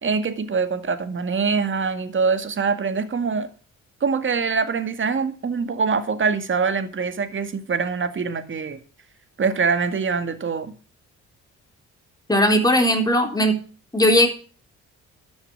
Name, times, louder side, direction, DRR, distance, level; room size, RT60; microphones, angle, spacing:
voice 1, 0.0-3.5 4.0-8.8 9.4-10.7, right 5 dB, 40° right, 2.1 m, -24 dB
voice 2, 12.3-13.6 13.9-14.3, equal, 10° left, 3.9 m, -18 dB
12.5 x 7.2 x 7.8 m
cardioid pair, 90°, 30 cm